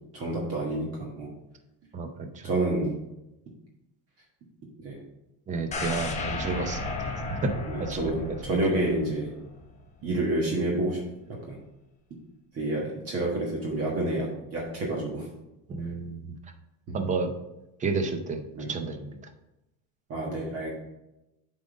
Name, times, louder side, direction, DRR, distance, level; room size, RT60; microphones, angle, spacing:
voice 1, 0.1-1.3 2.4-3.0 4.8-5.0 7.7-9.3 10.0-11.0 11.5-11.6 12.5-15.2 16.9-17.0 18.5-18.7 20.1-20.7, right 2 dB, 35° right, -3 dB, 1.5 m, -29 dB
voice 2, 1.9-2.4 5.5-6.8 7.3-7.5 7.8-8.6 15.7-16.3 16.9-17.3 17.8-19.2, right 4 dB, 20° right, 6 dB, 0.6 m, -31 dB
sound 1, 5.7-9.7 10.0-10.1, left 3 dB, 20° left, 0.8 m, -34 dB
7.6 x 3.8 x 5.0 m, 0.94 s
cardioid pair, 150°, 39 cm